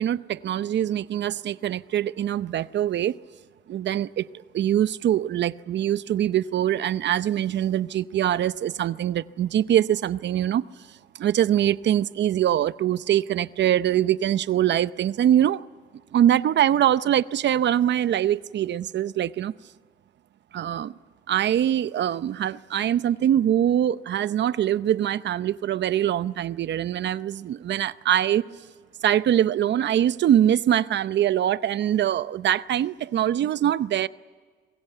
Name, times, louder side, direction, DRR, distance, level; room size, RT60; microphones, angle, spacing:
voice 1, 0.0-3.2 3.7-4.2 4.5-10.6 11.1-15.6 16.1-19.5 20.5-20.9 21.3-28.5 29.0-34.1, right 11 dB, 65° right, 0.7 m, -23 dB
25.0 x 21.5 x 9.2 m
cardioid pair, 90°, 20 cm